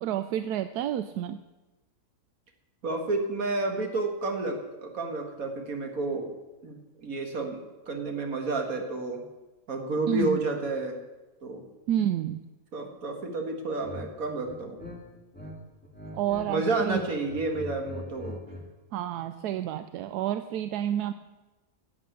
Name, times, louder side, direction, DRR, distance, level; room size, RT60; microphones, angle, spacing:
voice 1, 0.0-1.4 10.1-10.4 11.9-12.4 16.1-17.0 18.9-21.1, right 11 dB, 85° right, 11 dB, 1.1 m, -29 dB
voice 2, 2.8-6.3 6.6-7.6 7.9-9.2 9.7-11.0 11.4-11.6 12.7-14.8 16.5-18.4, right 2 dB, 65° right, 3 dB, 2.2 m, -30 dB
sound 1, 13.8-14.1 14.4-15.5 15.8-16.5 16.8-18.7, left 1 dB, 5° left, 2.0 m, -42 dB
11.5 x 8.5 x 8.7 m, 1.1 s
omnidirectional pair, 1.6 m